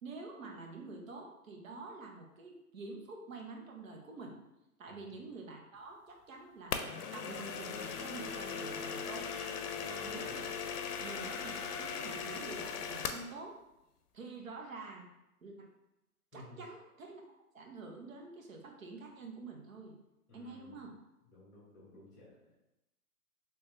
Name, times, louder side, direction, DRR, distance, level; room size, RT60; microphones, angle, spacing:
voice 1, 0.0-4.3 4.8-9.3 9.9-10.5 11.0-13.6 14.1-15.1 15.4-15.7 16.3-17.2 17.5-20.0 20.3-20.9, right 3 dB, 60° right, 1 dB, 0.9 m, -47 dB
sound 1, 6.7-13.3, left 6 dB, 80° left, 0.6 m, -39 dB
voice 2, 9.7-10.3 16.3-16.6 20.3-20.8 21.3-22.6, left 1 dB, 5° left, -7 dB, 0.8 m, -56 dB
3.4 x 3.1 x 3.1 m, 0.89 s
hypercardioid pair, 155°, 46 cm